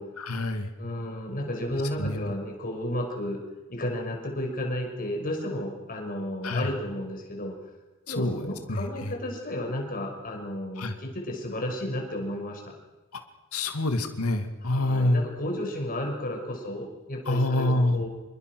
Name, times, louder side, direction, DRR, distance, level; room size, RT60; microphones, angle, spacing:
voice 1, 0.2-0.7 2.0-2.3 6.4-6.7 8.1-8.4 8.7-9.1 10.8-10.9 13.5-15.2 17.3-18.0, left 1 dB, 85° left, 6 dB, 2.4 m, -26 dB
voice 2, 0.8-3.4 3.7-7.5 8.1-12.7 14.6-18.1, left 1 dB, 40° left, 2 dB, 5.8 m, -33 dB
27.0 x 23.0 x 6.3 m, 1.2 s
head